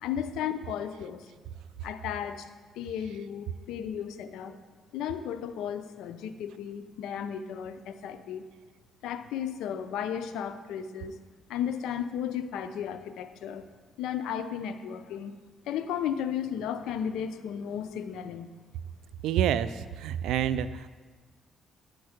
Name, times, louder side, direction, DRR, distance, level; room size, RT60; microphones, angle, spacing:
voice 1, 0.0-1.3 1.8-2.5 2.8-4.6 4.9-8.4 9.0-11.2 11.5-13.7 14.0-15.3 15.7-18.5, left 9 dB, 85° left, 10 dB, 0.5 m, -34 dB
voice 2, 19.2-20.9, right 10 dB, 90° right, 14 dB, 0.3 m, -28 dB
8.9 x 4.6 x 6.4 m, 1.4 s
cardioid pair, 90°, 0 cm